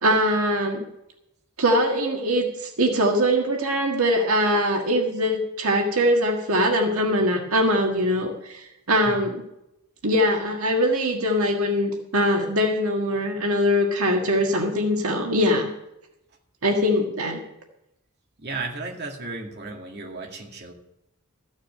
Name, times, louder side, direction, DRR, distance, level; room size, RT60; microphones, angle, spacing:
voice 1, 0.0-0.8 1.6-9.4 10.0-15.7 16.6-17.4, equal, 80° right, 2 dB, 1.7 m, -22 dB
voice 2, 18.4-20.7, right 3 dB, 50° right, 1 dB, 2.1 m, -34 dB
14.0 x 6.5 x 8.5 m, 0.86 s
head